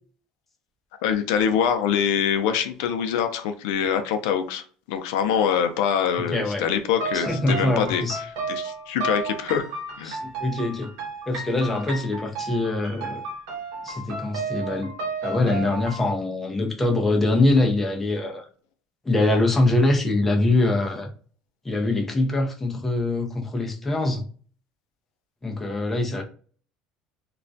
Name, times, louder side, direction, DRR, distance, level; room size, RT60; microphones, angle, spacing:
voice 1, 1.0-8.0 8.5-10.1, left 8 dB, 80° left, 0.4 m, -24 dB
voice 2, 6.2-6.6 7.1-8.2 10.0-10.9 11.3-13.3 13.8-14.9 15.2-18.4 19.0-21.1 21.6-24.2 25.4-26.2, left 2 dB, 10° left, 0.4 m, -23 dB
sound 1, 6.9-16.0, right 3 dB, 75° right, 0.8 m, -33 dB
2.3 x 2.1 x 2.6 m
cardioid pair, 155°, 2 cm